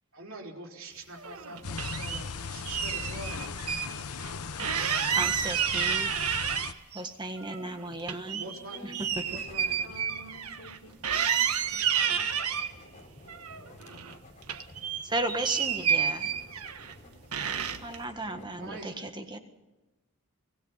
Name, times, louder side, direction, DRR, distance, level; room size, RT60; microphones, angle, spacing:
voice 1, 0.1-3.7 8.3-9.9 15.9-17.3 18.6-19.2, right 1 dB, 65° right, 1 dB, 3.8 m, -46 dB
sound 1, 1.2-2.2 2.7-3.9 4.2-4.3 4.6-7.0 7.4-10.8 11.0-12.7 13.3-14.2 14.4-16.9 17.3-18.0, right 8 dB, 85° right, 1.4 m, -30 dB
sound 2, 1.6-6.7, left 5 dB, 90° left, 1.0 m, -37 dB
voice 2, 5.1-6.1 6.9-8.4 8.8-9.3 15.0-16.3 17.8-19.4, right 2 dB, 20° right, 6 dB, 1.6 m, -34 dB
voice 3, 8.4-11.4 11.7-13.0 18.3-19.4, equal, 70° left, 2 dB, 3.8 m, -52 dB
sound 3, 9.1-18.8, left 1 dB, 35° left, 4.3 m, -52 dB
25.0 x 18.5 x 5.7 m, 1.1 s
head